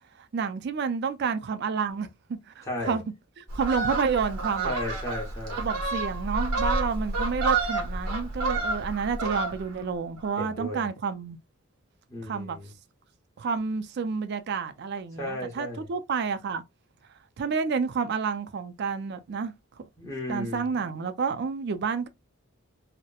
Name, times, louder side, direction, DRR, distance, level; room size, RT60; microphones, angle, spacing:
voice 1, 0.3-2.1 2.6-3.0 3.4-4.7 5.6-11.4 12.2-12.6 13.4-16.6 17.4-19.5 20.3-22.1, right 5 dB, 50° right, 0.3 m, -29 dB
voice 2, 2.6-3.0 4.6-5.6 10.4-10.9 12.1-12.7 15.1-15.8 20.0-20.7, left 1 dB, 15° left, 0.8 m, -34 dB
Fowl, 3.5-9.8 10.2-10.4, right 3 dB, 90° right, 0.8 m, -29 dB
2.8 x 2.0 x 2.2 m
head